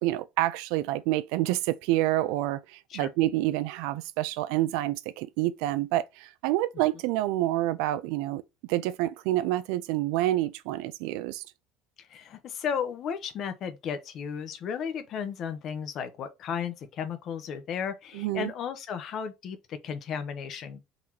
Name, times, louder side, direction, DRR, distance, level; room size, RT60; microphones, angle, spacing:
voice 1, 0.0-8.4 8.7-11.4 18.1-18.5, right 15 dB, 80° right, 0.4 m, -28 dB
voice 2, 12.0-20.9, left 7 dB, 40° left, 0.7 m, -34 dB
4.0 x 2.9 x 4.5 m
cardioid pair, 160°, 0 cm